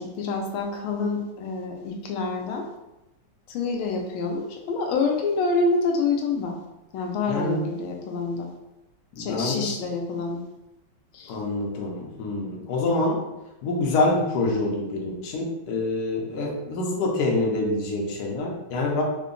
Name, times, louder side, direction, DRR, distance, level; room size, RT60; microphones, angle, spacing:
voice 1, 0.0-2.7 3.5-6.6 6.9-8.5 9.2-10.4 11.1-11.3, left 4 dB, 80° left, 2 dB, 1.4 m, -27 dB
voice 2, 7.3-7.6 9.2-9.6 11.3-13.2 13.6-19.0, left 2 dB, 65° left, -1 dB, 1.1 m, -26 dB
3.7 x 2.1 x 3.7 m, 0.97 s
omnidirectional pair, 2.2 m